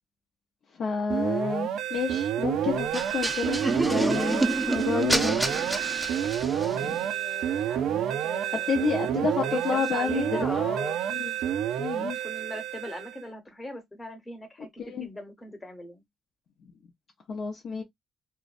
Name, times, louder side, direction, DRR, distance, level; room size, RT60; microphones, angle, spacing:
voice 1, 0.8-5.4 6.7-7.0 8.7-10.3 11.1-11.3 11.8-12.2 14.9-15.1 17.3-17.8, left 5 dB, 65° left, 0.7 m, -29 dB
sound 1, 1.1-13.2, right 10 dB, 80° right, 0.3 m, -29 dB
sound 2, 2.9-6.9, right 2 dB, 10° right, 0.4 m, -28 dB
voice 2, 6.5-9.0 9.4-11.2 12.0-16.0, left 1 dB, 20° left, 1.0 m, -40 dB
2.6 x 2.1 x 2.4 m
cardioid pair, 90°, 0 cm